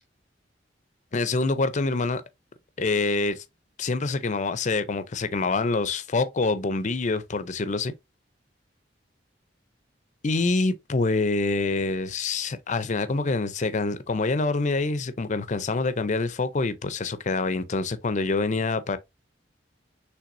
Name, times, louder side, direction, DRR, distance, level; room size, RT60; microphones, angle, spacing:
voice 1, 1.1-2.2 2.8-3.4 3.8-7.9 10.2-19.0, left 3 dB, 40° left, 0.6 m, -26 dB
6.0 x 3.2 x 2.6 m
head